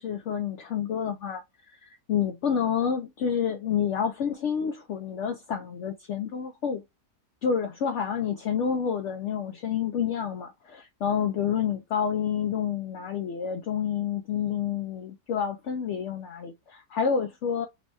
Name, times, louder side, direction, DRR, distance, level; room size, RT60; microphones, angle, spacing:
voice 1, 0.0-6.8 7.4-17.7, left 7 dB, 70° left, 0.7 m, -29 dB
5.3 x 2.2 x 2.7 m
omnidirectional pair, 1.7 m